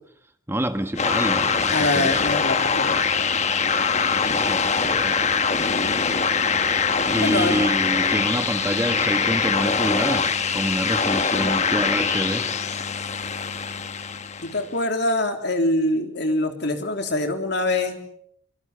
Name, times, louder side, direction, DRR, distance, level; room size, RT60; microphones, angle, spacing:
voice 1, 0.5-2.2 4.2-5.1 7.0-12.5, right 1 dB, 10° right, 7 dB, 1.4 m, -27 dB
sound 1, 1.0-14.7, left 5 dB, 35° left, 1.2 m, -23 dB
voice 2, 1.7-3.3 7.2-7.6 14.4-18.1, left 2 dB, 55° left, 5 dB, 3.5 m, -24 dB
26.0 x 23.5 x 7.0 m, 0.69 s
head